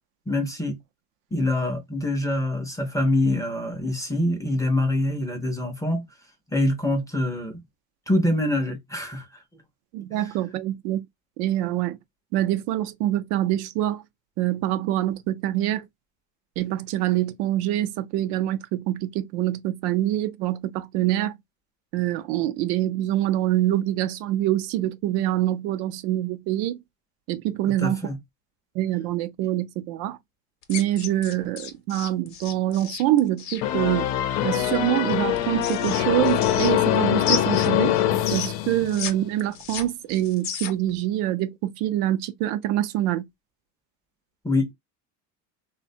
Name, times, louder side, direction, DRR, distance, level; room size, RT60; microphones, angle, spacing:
voice 1, 0.3-0.8 1.3-6.0 6.5-7.6 8.1-9.3 27.8-28.2 44.4-44.7, left 1 dB, 10° left, 0.5 m, -25 dB
voice 2, 9.9-11.1 11.4-12.0 12.3-14.0 14.4-15.9 16.6-21.4 21.9-26.8 27.3-28.0 28.7-30.2 30.7-34.1 34.4-37.9 38.3-43.3, right 13 dB, 70° right, 0.6 m, -25 dB
sound 1, 30.6-33.6 35.1-37.0 37.2-39.1 39.4-40.9, left 8 dB, 45° left, 0.7 m, -32 dB
sound 2, 33.6-39.3, left 12 dB, 85° left, 0.7 m, -23 dB
3.3 x 2.2 x 2.5 m
cardioid pair, 140°, 40 cm